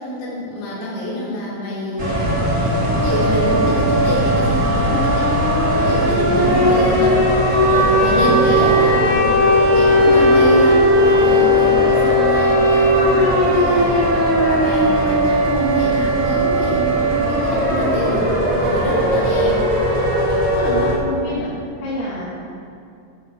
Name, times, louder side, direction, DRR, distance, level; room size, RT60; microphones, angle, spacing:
voice 1, 0.0-5.4 5.7-7.2 7.5-9.3 9.7-19.6, left 1 dB, 70° left, -8 dB, 6.3 m, -26 dB
sound 1, 2.0-20.9, equal, 20° right, 2.5 m, -16 dB
voice 2, 20.5-21.5 21.8-22.3, left 1 dB, 85° left, -8 dB, 5.1 m, -27 dB
17.0 x 13.5 x 3.7 m, 2.5 s
omnidirectional pair, 5.9 m